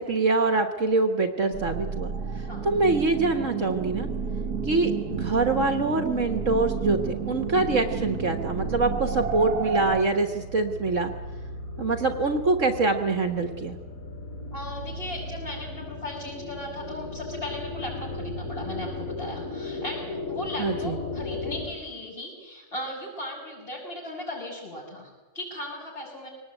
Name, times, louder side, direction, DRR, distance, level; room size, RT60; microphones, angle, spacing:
voice 1, 0.0-2.1 2.6-4.1 4.6-11.1 11.8-13.8 20.6-21.0, right 3 dB, 55° right, 6 dB, 1.7 m, -24 dB
sound 1, 1.5-10.0, right 6 dB, 80° right, 1.8 m, -31 dB
sound 2, 5.1-21.7, left 2 dB, 60° left, 8.1 m, -37 dB
voice 2, 14.5-26.3, left 1 dB, 35° left, -7 dB, 6.5 m, -37 dB
23.5 x 19.0 x 9.1 m, 1.2 s
omnidirectional pair, 1.6 m